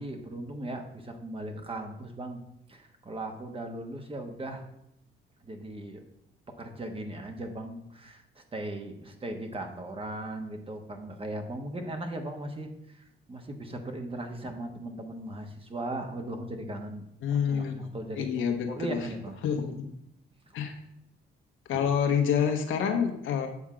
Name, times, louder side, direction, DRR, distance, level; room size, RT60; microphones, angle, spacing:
voice 1, 0.0-2.4 2.7-4.7 5.4-6.0 6.6-18.3 18.7-19.4 21.7-21.9, right 1 dB, 25° right, 5 dB, 1.2 m, -38 dB
voice 2, 17.2-17.9 18.1-19.0 19.4-19.8 20.5-20.7 21.7-23.5, left 7 dB, 80° left, 4 dB, 1.2 m, -27 dB
8.1 x 3.6 x 6.2 m, 0.78 s
cardioid pair, 90°, 20 cm